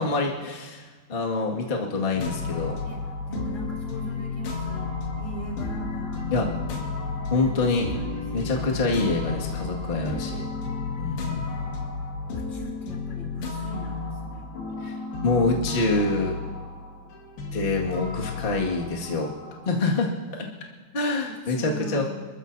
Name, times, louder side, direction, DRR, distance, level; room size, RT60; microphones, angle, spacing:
voice 1, 0.0-2.7 6.3-6.5 7.3-7.9 8.3-10.4 11.0-11.6 14.8-14.9 15.2-16.3 17.5-19.3 19.6-20.1 20.9-22.0, left 3 dB, 35° left, -2 dB, 0.8 m, -26 dB
sound 1, 2.1-19.6, left 4 dB, 75° left, 4.1 m, -32 dB
voice 2, 2.8-6.6 7.3-8.2 9.9-10.8 12.3-14.6 15.9-16.6 16.9-17.1 19.4-19.5 20.9-21.0 21.3-22.1, right 3 dB, 25° right, -1 dB, 1.5 m, -41 dB
28.5 x 14.0 x 2.8 m, 1.5 s
omnidirectional pair, 4.6 m